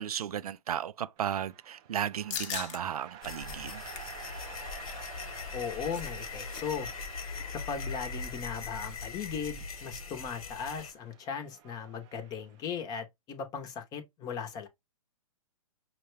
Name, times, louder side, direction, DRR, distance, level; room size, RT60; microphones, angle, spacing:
voice 1, 0.0-3.8, right 9 dB, 85° right, 0.4 m, -34 dB
sound 1, 1.2-12.7, right 10 dB, 25° right, 0.5 m, -51 dB
sound 2, 2.3-2.8 3.2-3.3 3.7-4.2 5.4-6.6 6.9-7.0 7.3-7.6, left 8 dB, 55° left, 0.8 m, -40 dB
sound 3, 3.2-10.9, left 5 dB, 75° left, 1.1 m, -40 dB
voice 2, 5.5-6.9 7.5-14.7, left 7 dB, 20° left, 0.8 m, -38 dB
5.6 x 2.2 x 3.1 m
hypercardioid pair, 140°, 19 cm